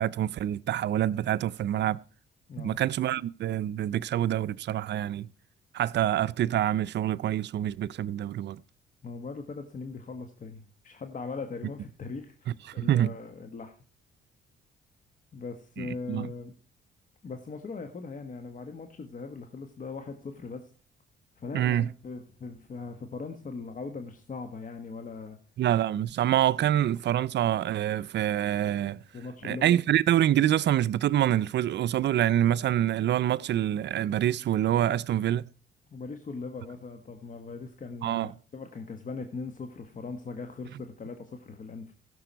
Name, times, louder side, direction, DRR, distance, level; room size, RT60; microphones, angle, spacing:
voice 1, 0.0-2.0 2.6-5.3 5.7-8.6 12.8-13.1 15.8-16.3 21.5-21.9 25.6-29.0 29.4-35.4 38.0-38.3, right 11 dB, 60° right, 0.5 m, -26 dB
voice 2, 2.5-2.8 9.0-13.7 15.3-16.5 17.2-20.7 21.4-25.4 29.1-29.8 35.9-41.9, left 4 dB, 40° left, 1.4 m, -40 dB
16.0 x 6.9 x 4.6 m
cardioid pair, 90°, 20 cm